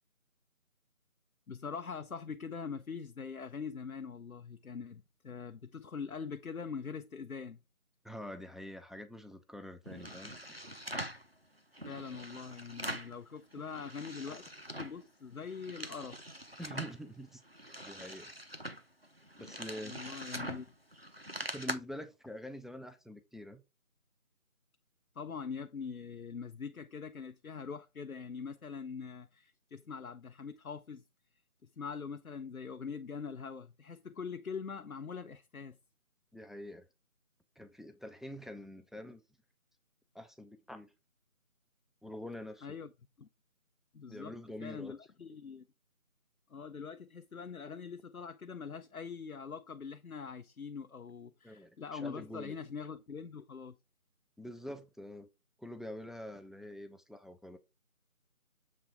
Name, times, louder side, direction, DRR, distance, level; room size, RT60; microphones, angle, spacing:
voice 1, 1.5-7.6 11.8-14.5 14.8-16.2 19.8-20.7 25.1-31.0 31.6-35.8 42.6-42.9 43.2-43.3 43.9-45.6 46.5-53.8, left 6 dB, 75° left, 0.7 m, -43 dB
voice 2, 8.0-10.4 16.6-17.4 17.8-18.3 19.4-20.0 21.5-23.6 36.3-36.9 37.6-39.2 40.1-40.9 42.0-42.8 44.1-45.0 51.4-52.6 54.4-55.3 55.6-57.6, left 1 dB, ahead, 0.5 m, -45 dB
sound 1, 9.9-11.3 11.7-13.2 13.5-15.0 15.4-17.0 17.5-21.7, equal, 45° right, 0.6 m, -43 dB
7.4 x 3.7 x 4.7 m
figure-of-eight pair, 175°, 44 cm